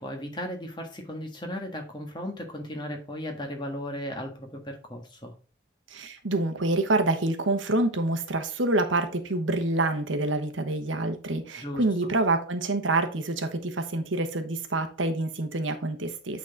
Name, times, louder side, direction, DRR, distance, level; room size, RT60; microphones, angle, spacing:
voice 1, 0.0-5.3 11.6-12.1, equal, 25° left, 1.4 m, -36 dB
voice 2, 5.9-16.4, right 2 dB, 85° right, 1.1 m, -27 dB
8.6 x 4.1 x 4.0 m
head